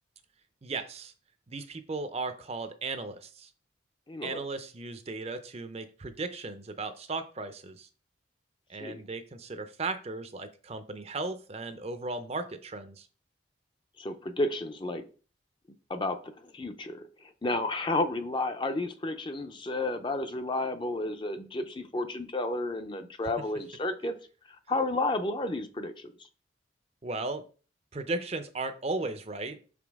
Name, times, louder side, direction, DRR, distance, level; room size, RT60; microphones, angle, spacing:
voice 1, 0.6-1.1 1.5-3.5 4.2-7.9 8.7-13.1 27.0-27.4 27.9-29.6, right 3 dB, 35° right, 9 dB, 0.5 m, -36 dB
voice 2, 4.1-4.4 8.8-9.0 14.0-15.0 15.9-17.0 17.4-24.2 24.7-26.1, left 2 dB, 25° left, 8 dB, 0.5 m, -31 dB
5.7 x 5.1 x 3.5 m, 0.37 s
head